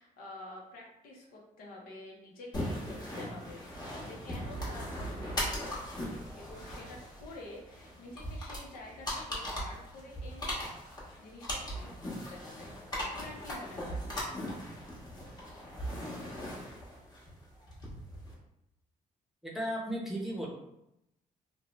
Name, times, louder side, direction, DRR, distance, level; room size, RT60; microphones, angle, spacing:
voice 1, 0.0-10.6 11.2-14.1, left 2 dB, 85° left, -2 dB, 0.7 m, -49 dB
sound 1, 2.5-18.3, equal, 30° left, 1.0 m, -39 dB
voice 2, 19.4-20.5, equal, ahead, -3 dB, 0.7 m, -35 dB
2.6 x 2.1 x 3.0 m, 0.84 s
cardioid pair, 90°, 15 cm